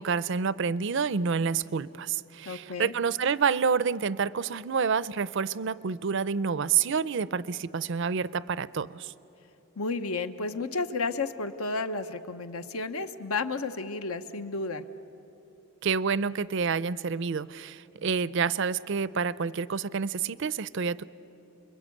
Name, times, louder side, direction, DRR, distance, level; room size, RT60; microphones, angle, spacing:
voice 1, 0.0-9.1 15.8-21.0, right 6 dB, 55° right, 18 dB, 0.5 m, -28 dB
voice 2, 2.4-2.9 9.8-14.8, left 3 dB, 80° left, 10 dB, 1.1 m, -32 dB
29.5 x 22.0 x 8.6 m, 2.9 s
head